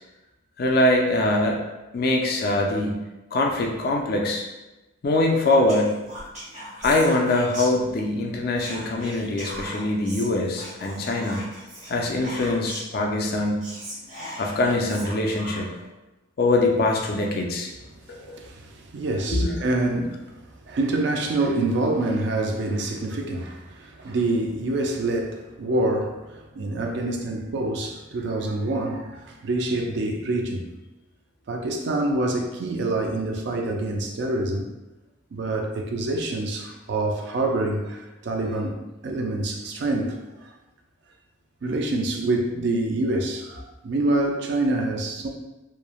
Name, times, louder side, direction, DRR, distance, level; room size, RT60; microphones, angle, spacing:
voice 1, 0.6-1.6 1.9-3.0 3.3-4.4 5.0-6.0 6.8-11.4 11.9-13.6 14.4-15.7 16.4-17.7 18.2-18.4 19.3-19.6, left 2 dB, 50° left, 1 dB, 0.3 m, -23 dB
Whispering, 5.7-8.2 8.5-13.0 13.3-13.4 13.6-15.9, equal, 35° right, 0.8 m, -39 dB
voice 2, 18.2-20.4 20.7-30.7 31.5-34.7 35.3-40.5 41.6-45.3, right 2 dB, 55° right, 3 dB, 0.3 m, -26 dB
3.0 x 2.0 x 2.3 m, 1.0 s
head